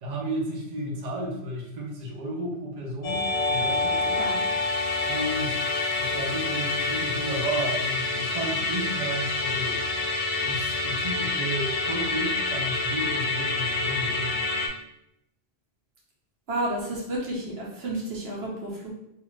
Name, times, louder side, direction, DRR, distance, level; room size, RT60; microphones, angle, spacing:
voice 1, 0.0-3.2 3.5-4.3 5.0-5.6 6.0-9.8 10.4-14.5, right 1 dB, 45° right, -3 dB, 0.7 m, -33 dB
Musical instrument, 3.0-14.7, left 3 dB, 75° left, 0.8 m, -27 dB
voice 2, 16.5-18.9, right 1 dB, 80° right, -4 dB, 1.1 m, -31 dB
2.5 x 2.4 x 3.1 m, 0.81 s
omnidirectional pair, 1.0 m